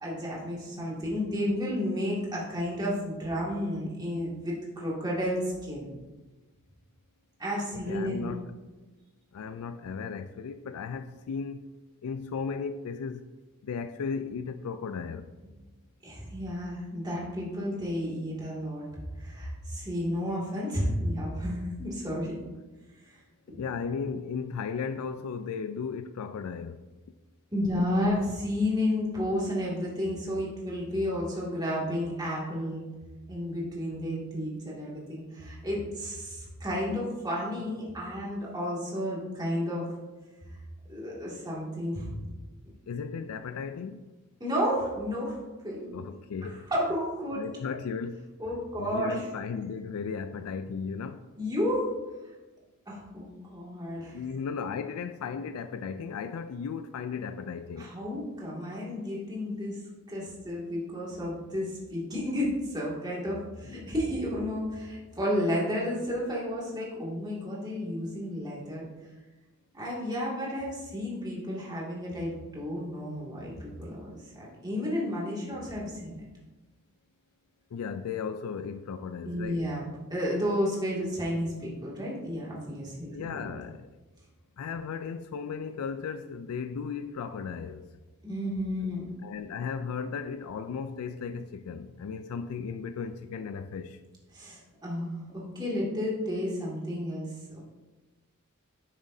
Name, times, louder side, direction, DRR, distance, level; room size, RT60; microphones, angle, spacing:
voice 1, 0.0-5.9 7.4-8.4 16.0-18.9 19.2-22.4 23.5-23.6 27.5-32.9 33.3-39.9 40.9-42.1 44.4-45.4 45.6-46.0 46.7-47.4 48.4-49.3 51.4-51.9 52.9-54.2 57.8-59.8 60.1-68.8 69.7-76.1 79.2-79.8 80.1-83.5 88.2-89.1 94.3-97.6, equal, 20° right, 2.2 m, -32 dB
voice 2, 7.9-8.5 9.3-11.7 12.0-13.3 13.6-15.3 23.5-26.8 42.9-44.0 45.9-46.7 47.4-48.3 48.8-51.2 53.9-57.9 63.6-63.9 77.7-79.7 83.1-83.9 84.6-87.9 89.2-94.0, left 5 dB, 75° left, 0.3 m, -36 dB
10.0 x 7.1 x 2.7 m
head